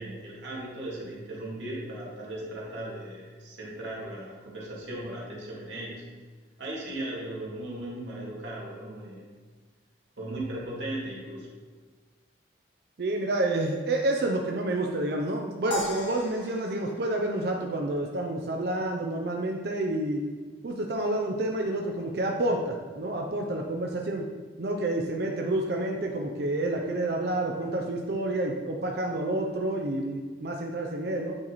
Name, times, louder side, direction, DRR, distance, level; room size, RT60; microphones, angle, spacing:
voice 1, 0.0-6.0 6.6-9.3 10.2-11.5, right 1 dB, 85° right, -5 dB, 1.8 m, -37 dB
voice 2, 13.0-20.2 20.6-24.3 24.6-31.3, right 1 dB, 55° right, 1 dB, 0.5 m, -29 dB
sound 1, 15.7-18.1, equal, 80° left, 1.5 m, -37 dB
8.7 x 3.0 x 4.0 m, 1.4 s
head